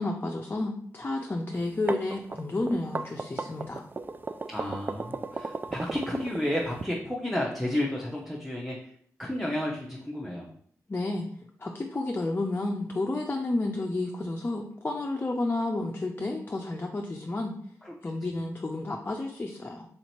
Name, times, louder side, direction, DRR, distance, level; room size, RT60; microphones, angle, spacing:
voice 1, 0.0-3.8 10.9-11.3 11.6-17.5 18.0-19.9, left 2 dB, 30° left, 1 dB, 0.5 m, -31 dB
sound 1, 1.6-6.8, right 3 dB, 30° right, 0.3 m, -35 dB
voice 2, 4.5-8.9 9.2-10.5 17.8-17.9, left 1 dB, ahead, -3 dB, 0.8 m, -32 dB
3.2 x 2.9 x 4.3 m, 0.62 s
supercardioid pair, 45°, 7 cm